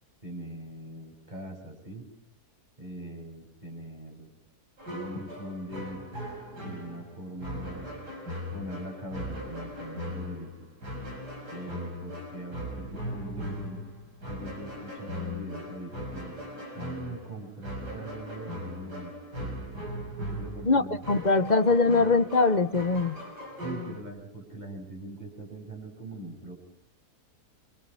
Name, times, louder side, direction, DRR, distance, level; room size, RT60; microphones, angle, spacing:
voice 1, 0.2-2.0 2.8-4.3 4.9-6.0 6.6-7.9 8.5-10.5 11.5-13.8 14.3-16.3 16.7-19.5 20.4-21.0 21.4-21.5 21.9-22.2 23.6-26.5, right 1 dB, 25° right, 1 dB, 7.5 m, -41 dB
sound 1, 4.8-24.0, left 1 dB, 85° right, 6.8 m, -39 dB
voice 2, 20.6-23.2, left 3 dB, 30° left, 10 dB, 1.0 m, -22 dB
27.0 x 25.5 x 5.6 m, 0.63 s
omnidirectional pair, 1.7 m